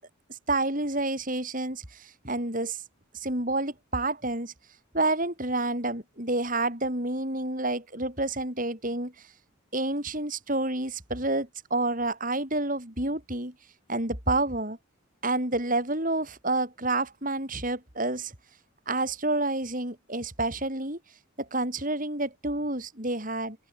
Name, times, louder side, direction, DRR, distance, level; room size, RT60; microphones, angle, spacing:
voice 1, 0.3-2.8 3.1-4.5 4.9-9.1 9.7-13.5 13.9-14.8 15.2-18.3 18.9-21.0 21.4-23.6, right 2 dB, 40° right, 6.8 m, -29 dB
head